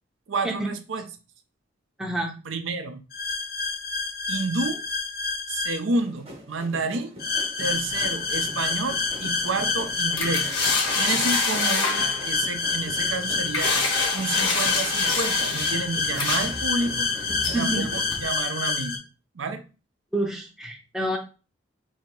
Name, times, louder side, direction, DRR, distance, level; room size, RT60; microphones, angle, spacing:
voice 1, 0.3-1.0 2.5-3.0 4.3-4.8 5.5-7.1 7.6-10.5 10.9-13.9 14.1-17.1 17.4-19.0 19.4-19.6, right 3 dB, 90° right, 7 dB, 0.6 m, -30 dB
voice 2, 2.0-2.3 17.5-17.9 20.1-21.2, right 1 dB, 5° right, 1 dB, 0.5 m, -28 dB
sound 1, 3.1-5.8 7.2-19.0, left 4 dB, 50° left, 0.6 m, -28 dB
sound 2, 6.0-18.1, equal, 30° right, 1.0 m, -42 dB
sound 3, 7.7-18.3, left 3 dB, 90° left, 1.3 m, -29 dB
2.9 x 2.7 x 4.4 m, 0.33 s
head